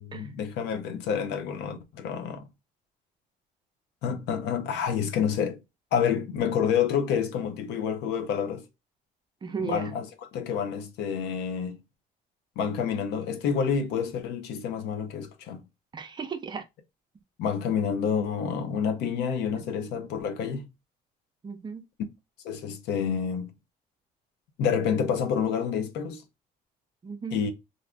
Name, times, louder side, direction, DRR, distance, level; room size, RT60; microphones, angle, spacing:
voice 1, 0.1-2.4 4.0-5.6 5.9-8.6 9.6-11.8 12.6-15.6 17.4-20.7 22.4-23.5 24.6-26.2 27.3-27.5, left 7 dB, 85° left, 0.6 m, -28 dB
voice 2, 9.4-9.9 15.9-16.6 21.4-21.8 27.0-27.4, right 5 dB, 25° right, 0.5 m, -35 dB
2.6 x 2.4 x 3.4 m
cardioid pair, 110°, 17 cm